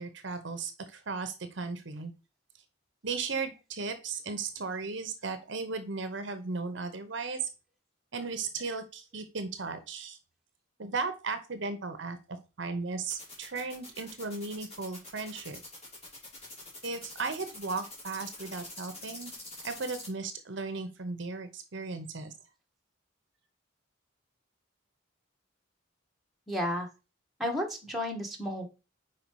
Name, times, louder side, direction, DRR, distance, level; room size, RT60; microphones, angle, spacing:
voice 1, 0.0-2.1 3.0-7.5 8.1-10.2 10.8-12.2 12.6-15.6 16.8-19.3 19.6-22.3, right 4 dB, 60° right, 10 dB, 0.8 m, -36 dB
sound 1, 13.1-20.1, left 2 dB, 30° left, 2.8 m, -45 dB
voice 2, 26.5-26.9 27.4-28.7, left 1 dB, ahead, 0 dB, 1.4 m, -32 dB
5.4 x 4.6 x 4.6 m, 0.30 s
head